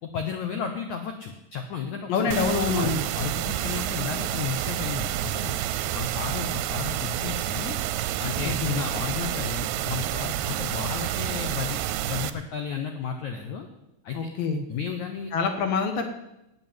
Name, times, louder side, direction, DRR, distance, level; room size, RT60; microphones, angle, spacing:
voice 1, 0.0-2.3 2.7-5.5 5.9-7.8 8.2-11.8 12.1-13.7 14.0-14.3 14.7-15.3, left 6 dB, 90° left, 5 dB, 1.6 m, -33 dB
voice 2, 2.1-3.0 8.6-8.8 14.1-14.6 15.3-16.1, left 5 dB, 65° left, 6 dB, 2.4 m, -25 dB
sound 1, 2.3-12.3, right 12 dB, 80° right, 2.4 m, -29 dB
13.0 x 8.7 x 9.3 m, 0.90 s
omnidirectional pair, 5.2 m